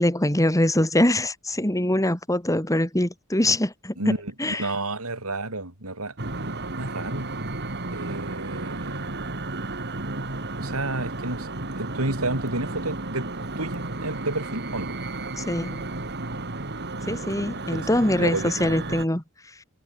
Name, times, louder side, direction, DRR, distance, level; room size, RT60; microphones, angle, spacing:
voice 1, 0.0-3.9 4.4-4.7 15.4-15.9 17.1-19.2, left 1 dB, 15° left, 3.3 m, -23 dB
voice 2, 4.0-7.3 7.9-9.1 10.6-13.3 13.6-15.0 17.0-17.2 17.7-17.9 18.2-18.8, right 2 dB, 80° right, 5.8 m, -31 dB
sound 1, 6.2-19.1, right 2 dB, 55° right, 3.7 m, -33 dB
head